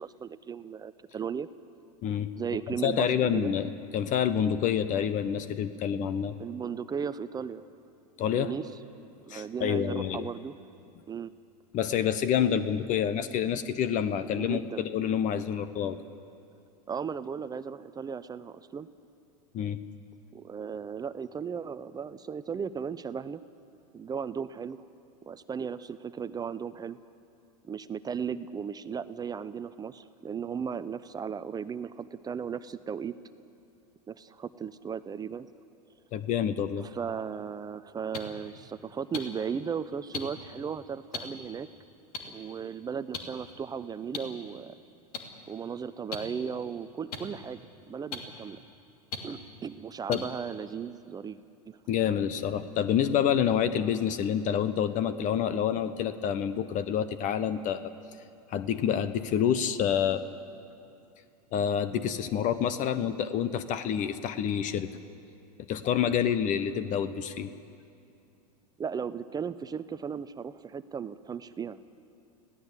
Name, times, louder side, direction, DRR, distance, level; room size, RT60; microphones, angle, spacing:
voice 1, 0.0-1.5 2.4-3.1 3.3-3.5 6.4-7.6 8.3-8.7 9.3-10.5 11.1-11.3 12.4-12.6 14.4-14.9 16.9-18.9 20.3-23.4 23.9-24.8 25.3-27.0 27.6-33.1 34.1-35.5 36.8-41.7 42.2-44.8 45.5-47.6 47.9-48.6 49.2-51.4 51.7-51.8 68.8-71.8, right 7 dB, 20° right, 13 dB, 0.7 m, -36 dB
voice 2, 2.8-6.4 8.2-8.5 9.3-10.2 11.7-16.0 19.5-19.8 36.1-36.9 50.1-50.2 51.9-57.9 58.5-60.2 61.5-64.9 65.7-67.5, left 9 dB, 40° left, 12 dB, 1.0 m, -28 dB
sound 1, 38.1-38.2 39.1-39.2 40.1-40.2 41.1-41.2 42.1-42.2 43.1-43.2 44.1-44.2 45.1-45.2 46.1-46.2 47.1-47.2 48.1-48.2 49.1-49.2 50.1-50.2 51.1-51.2, left 5 dB, 70° left, 2.8 m, -34 dB
26.5 x 17.5 x 8.3 m, 2.5 s
hypercardioid pair, 100°, 20 cm